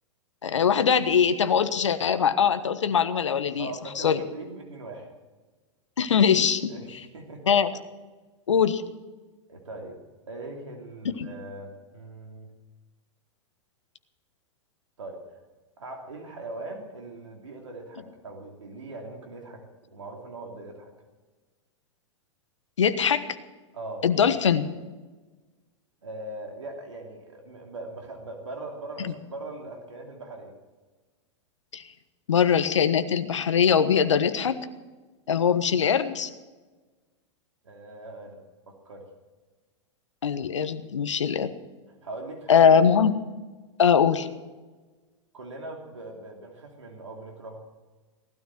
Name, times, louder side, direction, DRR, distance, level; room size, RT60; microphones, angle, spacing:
voice 1, 0.4-3.7 4.0-4.2 6.0-6.7 7.5-7.7 8.5-8.8 11.2-11.3 22.8-23.3 24.0-24.7 29.0-29.1 31.7-31.8 32.3-34.6 35.3-36.3 40.2-41.5 42.5-43.1 43.8-44.3, left 7 dB, 80° left, 11 dB, 1.2 m, -22 dB
voice 2, 3.6-5.1 6.7-7.5 9.5-10.0 10.3-12.5 15.0-15.4 15.8-20.9 23.7-24.1 26.0-30.5 37.6-39.1 42.0-42.7 45.3-47.6, right 2 dB, 85° right, 1 dB, 2.9 m, -40 dB
18.5 x 13.0 x 6.0 m, 1.3 s
hypercardioid pair, 105°, 15 cm